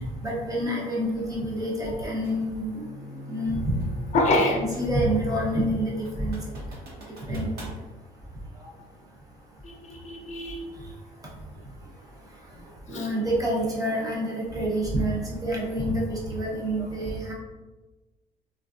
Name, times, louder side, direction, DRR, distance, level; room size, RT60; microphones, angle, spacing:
voice 1, 0.2-2.8 3.3-3.8 4.5-5.9 6.2-6.4 7.3-7.5 12.9-17.3, right 1 dB, 20° right, -4 dB, 0.8 m, -27 dB
sound 1, 2.2-2.4 3.8-5.1 5.5-5.6 6.0-7.8, right 1 dB, 70° right, 1.0 m, -45 dB
Bowed string instrument, 2.6-6.7, left 1 dB, 85° left, 0.5 m, -41 dB
voice 2, 4.1-4.6 7.3-7.5 9.6-10.7 12.9-13.1, left 2 dB, 45° left, 1 dB, 0.7 m, -26 dB
3.3 x 2.4 x 2.5 m, 1.2 s
cardioid pair, 110°, 17 cm